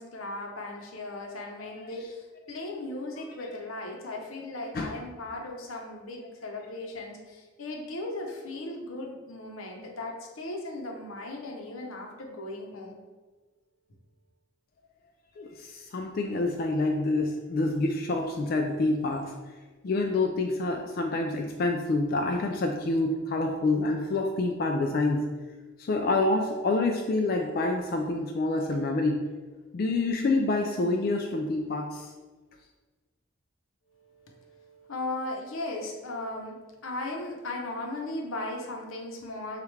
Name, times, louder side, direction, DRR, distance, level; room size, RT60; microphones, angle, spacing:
voice 1, 0.0-13.0 33.9-39.6, left 2 dB, 85° left, 1 dB, 0.8 m, -37 dB
voice 2, 15.4-19.3 19.8-25.2 25.8-29.2 29.7-32.1, left 2 dB, 45° left, 2 dB, 0.3 m, -27 dB
6.3 x 2.4 x 3.2 m, 1.3 s
head